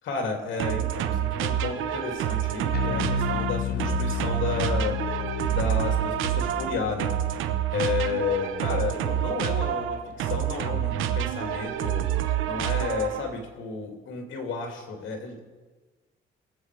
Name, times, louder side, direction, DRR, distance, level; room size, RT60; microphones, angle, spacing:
voice 1, 0.0-5.0 5.5-7.2 7.7-12.1 12.4-15.4, left 5 dB, 80° left, 3 dB, 2.8 m, -32 dB
sound 1, 0.6-13.4, right 11 dB, 90° right, 0.9 m, -28 dB
Bass guitar, 2.7-9.2, left 14 dB, 55° left, 0.5 m, -33 dB
22.5 x 7.8 x 4.9 m, 1.3 s
cardioid pair, 90°, 20 cm